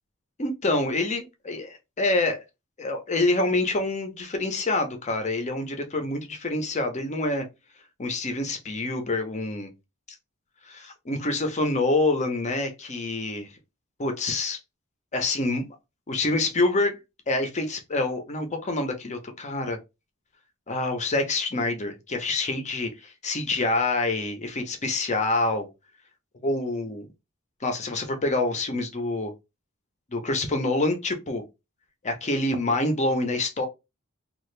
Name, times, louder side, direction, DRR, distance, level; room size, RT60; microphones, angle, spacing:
voice 1, 0.4-2.4 2.8-7.5 8.0-9.7 10.7-13.5 14.0-14.6 15.1-15.8 16.1-17.0 17.3-19.8 20.7-25.7 26.4-27.1 27.6-29.3 30.1-31.4 32.0-33.6, left 2 dB, 35° left, 0.7 m, -26 dB
2.8 x 2.4 x 3.2 m
head